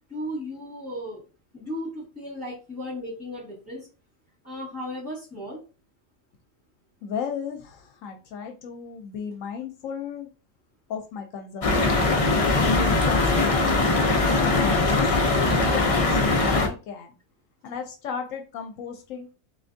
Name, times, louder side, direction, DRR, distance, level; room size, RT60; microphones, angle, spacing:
voice 1, 0.1-1.2 1.5-3.9 4.4-5.6, left 1 dB, 10° left, -9 dB, 1.9 m, -35 dB
voice 2, 7.0-10.3 10.9-12.0 12.6-13.8 14.3-17.1 17.6-19.3, left 6 dB, 75° left, 5 dB, 1.0 m, -34 dB
sound 1, 11.6-16.7, left 3 dB, 55° left, 0.3 m, -21 dB
3.9 x 3.3 x 2.6 m, 0.34 s
omnidirectional pair, 1.5 m